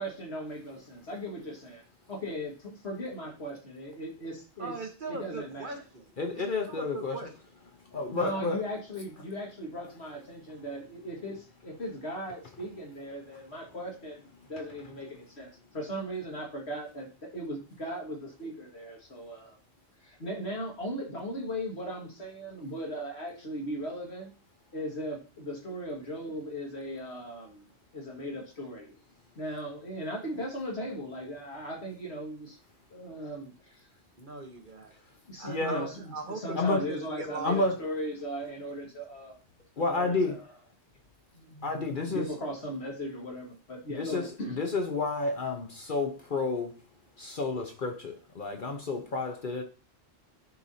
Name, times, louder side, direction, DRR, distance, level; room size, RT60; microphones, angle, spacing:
voice 1, 0.0-1.8 2.1-4.7 5.1-5.7 8.1-14.2 14.5-19.6 20.0-24.3 24.7-27.7 27.9-28.9 29.4-32.6 32.9-33.8 35.3-39.4 39.8-40.5 41.3-44.6, equal, 70° left, 2.2 m, -38 dB
voice 2, 4.6-7.3 34.2-34.9 35.4-37.9, right 3 dB, 50° right, 1.2 m, -40 dB
voice 3, 6.2-7.2 7.9-8.6 35.5-35.9 36.6-36.8 37.4-37.7 39.8-40.4 41.6-42.3 43.9-46.7 47.2-49.6, left 3 dB, 50° left, 1.1 m, -30 dB
11.0 x 4.7 x 2.7 m
omnidirectional pair, 1.1 m